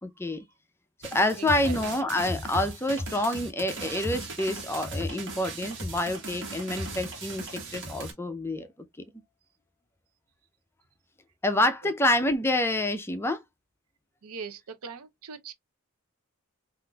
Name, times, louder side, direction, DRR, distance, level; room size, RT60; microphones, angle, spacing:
voice 1, 0.0-0.4 1.1-8.7 11.4-13.4, left 1 dB, 10° left, 0.4 m, -27 dB
sound 1, 1.0-8.1, right 1 dB, 55° right, 1.3 m, -37 dB
voice 2, 1.4-1.7 14.2-15.5, right 5 dB, 90° right, 0.6 m, -40 dB
3.7 x 2.5 x 2.2 m
head